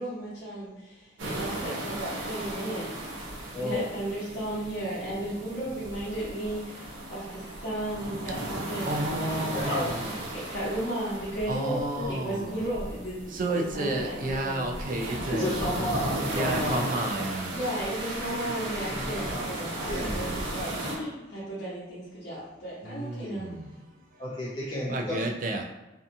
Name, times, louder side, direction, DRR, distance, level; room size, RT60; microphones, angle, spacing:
voice 1, 0.0-2.9 3.5-9.2 9.7-9.8 10.3-11.6 12.1-14.7 17.3-23.5, right 1 dB, 60° left, -10 dB, 0.9 m, -35 dB
sound 1, 1.2-21.0, right 1 dB, 90° right, 0.7 m, -35 dB
voice 2, 3.5-3.8 9.5-9.9 11.5-12.1 15.3-16.9 17.2-17.3 19.0-19.5 19.9-20.1 23.2-23.3 24.2-25.2, left 1 dB, 25° left, -5 dB, 0.3 m, -32 dB
voice 3, 8.8-10.3 11.5-12.6 13.3-15.5 16.3-17.6 20.0-20.4 22.8-23.7 24.9-25.6, right 1 dB, 45° right, 2 dB, 0.4 m, -31 dB
2.7 x 2.3 x 2.6 m, 1.0 s
head